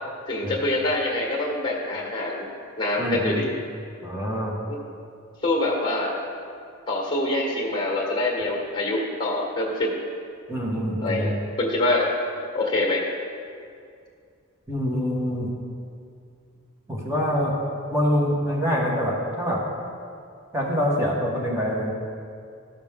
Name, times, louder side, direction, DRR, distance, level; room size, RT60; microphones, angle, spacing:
voice 1, 0.3-2.5 2.8-3.5 5.4-6.1 6.9-10.0 11.0-11.3 11.6-12.1 12.5-13.0, left 2 dB, 20° left, -1 dB, 1.6 m, -25 dB
voice 2, 3.0-3.4 4.0-4.6 10.5-11.3 14.7-15.5 16.9-17.5 17.9-19.6 20.5-21.9, equal, 15° right, -4 dB, 1.5 m, -25 dB
13.0 x 6.3 x 3.6 m, 2.4 s
head